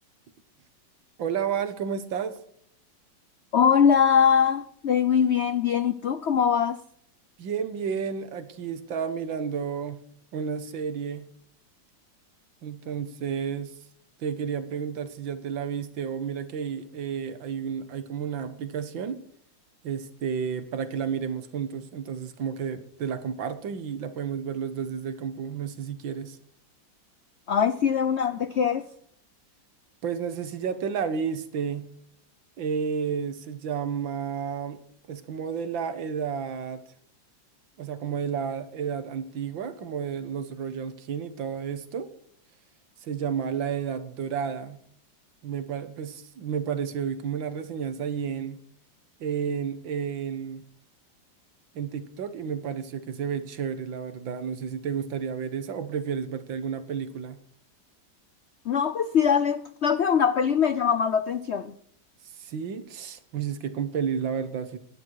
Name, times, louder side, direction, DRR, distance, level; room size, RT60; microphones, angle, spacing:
voice 1, 1.2-2.4 7.4-10.0 10.3-11.3 12.6-13.8 14.2-19.2 19.8-26.4 30.0-31.9 32.6-34.8 35.1-36.8 37.8-42.1 43.0-44.8 45.4-48.6 49.2-50.6 51.7-57.4 62.3-64.8, right 7 dB, 85° right, 2.0 m, -31 dB
voice 2, 3.5-6.8 27.5-28.8 58.7-61.7, left 7 dB, 80° left, 0.6 m, -22 dB
16.0 x 10.5 x 4.7 m
omnidirectional pair, 2.0 m